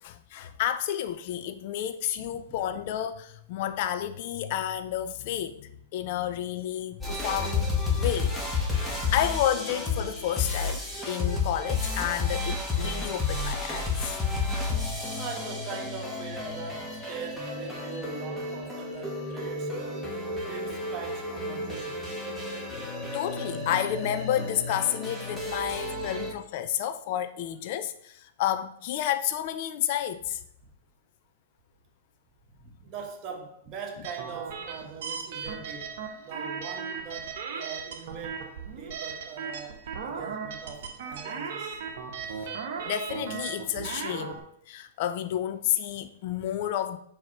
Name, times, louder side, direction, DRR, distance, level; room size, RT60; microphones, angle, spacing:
voice 1, 0.0-7.7 8.0-14.2 22.8-30.4 42.3-42.6 42.8-44.4 44.7-47.0, left 11 dB, 50° left, 0.6 m, -31 dB
voice 2, 2.2-2.6 7.0-7.1 14.9-20.1 20.4-22.2 22.5-22.6 25.7-25.8 32.5-41.8, right 5 dB, 35° right, 1.8 m, -42 dB
Drum and Bass Music, 7.0-26.3, left 3 dB, 5° left, 1.7 m, -31 dB
sound 1, 34.0-44.4, right 6 dB, 60° right, 1.0 m, -37 dB
4.7 x 4.6 x 5.7 m
hypercardioid pair, 110°, 0 cm